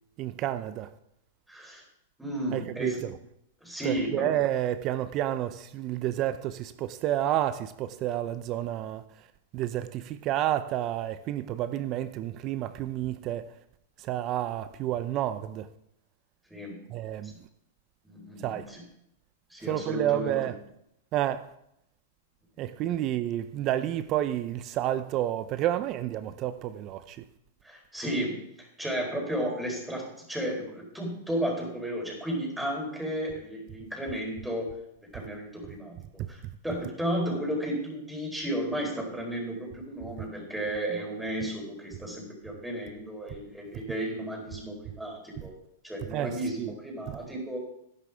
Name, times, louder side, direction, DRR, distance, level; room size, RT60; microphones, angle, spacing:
voice 1, 0.2-0.9 2.5-3.1 3.8-9.0 9.5-13.5 14.0-15.7 16.9-17.5 18.4-18.7 19.7-20.5 21.1-21.5 22.6-27.2 46.1-46.7, right 12 dB, 40° right, 0.6 m, -30 dB
voice 2, 1.5-1.8 2.2-3.0 3.6-4.3 16.5-16.8 17.2-17.3 18.0-18.8 19.5-20.4 27.6-34.7 35.0-36.0 36.3-45.6 45.8-47.6, right 1 dB, 5° right, 4.1 m, -33 dB
12.0 x 11.0 x 3.5 m
hypercardioid pair, 120°, 0 cm